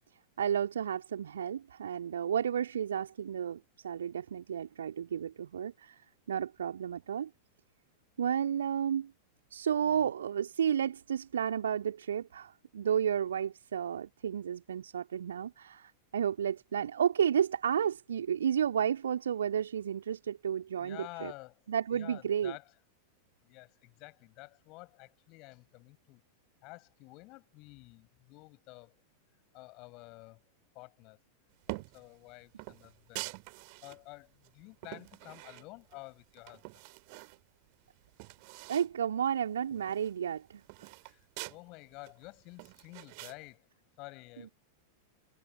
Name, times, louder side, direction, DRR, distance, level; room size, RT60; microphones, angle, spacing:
voice 1, 0.4-6.0 6.3-7.3 8.2-9.1 9.5-21.3 21.7-22.5 38.7-40.9, right 8 dB, 65° right, 2.5 m, -32 dB
voice 2, 20.8-21.6 21.9-22.7 23.4-26.2 26.6-29.0 29.5-30.4 30.7-31.2 31.7-33.3 33.8-36.8 41.0-43.7 44.0-44.5, left 24 dB, 40° left, 7.2 m, -50 dB
sound 1, 31.6-32.1 32.6-34.0 34.4-36.0 36.3-37.4 37.7-37.8 38.0-38.9 39.2-39.3 39.7-41.6 42.0-43.4, right 36 dB, 45° right, 2.9 m, -45 dB
figure-of-eight pair, 90°, 0 cm